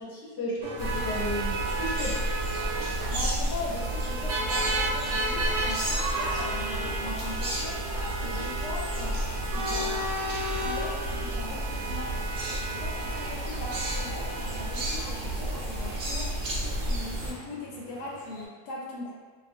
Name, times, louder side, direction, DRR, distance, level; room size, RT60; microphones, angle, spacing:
voice 1, 0.0-2.2, left 1 dB, 50° left, -7 dB, 0.9 m, -34 dB
sound 1, 0.6-18.4, right 2 dB, 90° right, 1.2 m, -34 dB
sound 2, 0.8-17.3, right 1 dB, 70° right, 0.5 m, -32 dB
voice 2, 3.1-9.1 9.4-10.1 10.6-12.1 12.7-16.3 16.8-19.1, left 2 dB, 90° left, -3 dB, 1.2 m, -39 dB
2.6 x 2.4 x 2.5 m, 1.4 s
omnidirectional pair, 1.7 m